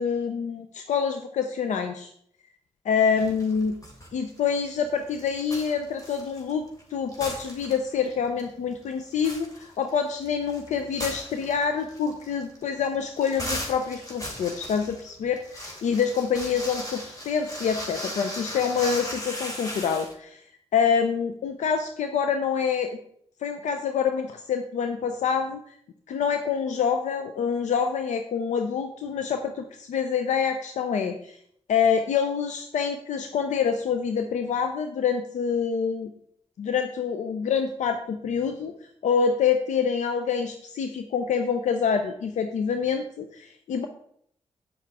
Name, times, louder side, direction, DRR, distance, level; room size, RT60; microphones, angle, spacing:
voice 1, 0.0-2.1 2.9-3.7 4.1-6.6 6.9-20.4 20.7-22.9 23.4-25.6 26.1-31.4 31.7-36.1 36.6-38.7 39.0-43.9, left 6 dB, 90° left, 6 dB, 0.6 m, -26 dB
sound 1, 3.2-4.1 4.4-6.8 7.1-8.1 8.4-8.5 8.9-20.1, equal, 30° left, 3.0 m, -37 dB
9.1 x 7.5 x 3.5 m, 0.66 s
cardioid pair, 50°, 12 cm